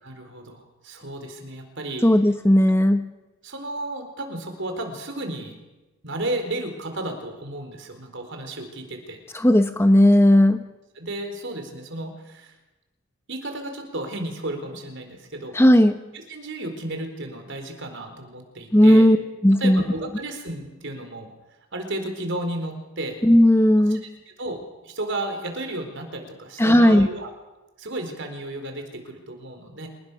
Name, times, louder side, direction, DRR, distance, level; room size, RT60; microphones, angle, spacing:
voice 1, 0.0-2.0 3.4-5.5 6.0-9.2 11.0-12.5 13.3-15.5 16.1-19.1 19.6-21.3 21.7-23.2 23.9-24.0 24.3-27.3 27.8-29.9, right 1 dB, 60° right, 5 dB, 4.4 m, -33 dB
voice 2, 2.0-3.1 9.3-10.6 15.5-16.0 18.7-19.2 19.4-19.8 23.2-24.0 26.6-27.1, left 1 dB, 10° left, 9 dB, 0.9 m, -15 dB
28.5 x 19.5 x 6.4 m, 1.1 s
head